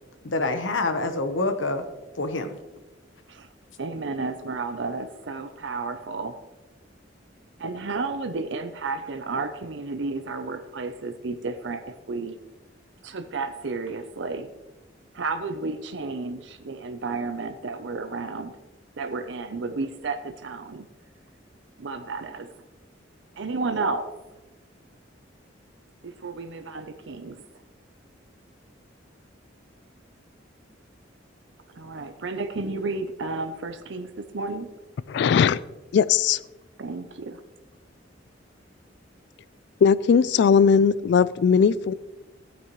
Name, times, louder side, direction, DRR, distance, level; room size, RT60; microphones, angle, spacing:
voice 1, 0.2-1.8 2.2-2.6, left 2 dB, 90° left, 7 dB, 1.0 m, -26 dB
voice 2, 3.8-6.4 7.6-12.4 13.0-14.5 15.1-18.5 19.0-20.8 21.8-22.5 23.3-24.1 26.0-27.4 31.7-34.7 36.8-37.4, right 3 dB, 70° right, 7 dB, 0.6 m, -32 dB
voice 3, 35.1-35.6 35.9-36.4 39.8-41.9, left 6 dB, 65° left, 18 dB, 0.3 m, -19 dB
14.5 x 9.2 x 3.1 m, 1.1 s
head